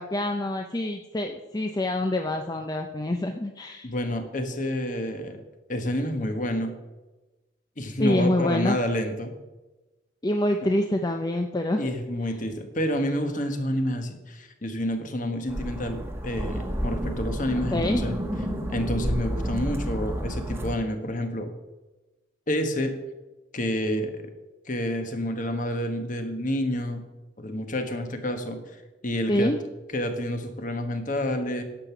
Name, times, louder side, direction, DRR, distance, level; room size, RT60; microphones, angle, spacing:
voice 1, 0.0-3.9 8.0-8.8 10.2-11.9 17.7-18.0 29.3-29.6, left 1 dB, 20° left, 4 dB, 0.5 m, -26 dB
voice 2, 3.8-5.4 5.7-6.7 7.8-9.3 11.8-18.2 18.7-21.5 22.5-22.9 23.5-24.3 24.6-27.0 27.4-29.5 29.9-31.6, equal, 40° left, 6 dB, 1.3 m, -29 dB
sound 1, 15.5-20.7, equal, 10° right, 1.1 m, -30 dB
10.5 x 7.6 x 5.9 m, 1.1 s
head